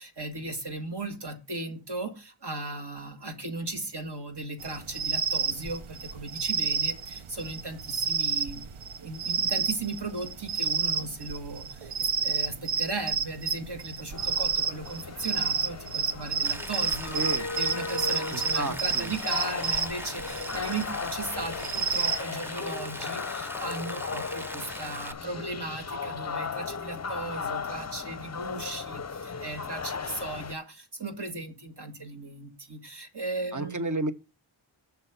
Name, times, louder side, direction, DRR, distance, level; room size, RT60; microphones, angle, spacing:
voice 1, 0.0-8.6 9.0-17.2 17.5-33.9, right 2 dB, 55° right, 2.0 m, -37 dB
sound 1, 4.6-22.2, right 6 dB, 80° right, 0.8 m, -30 dB
sound 2, 14.1-30.5, left 5 dB, 35° left, 0.6 m, -36 dB
Rain, 16.4-25.1, equal, 5° right, 0.7 m, -41 dB
voice 2, 17.1-17.5 18.3-19.1 33.5-34.1, right 2 dB, 35° right, 1.1 m, -31 dB
6.9 x 6.1 x 5.8 m
wide cardioid pair, 45°, 49 cm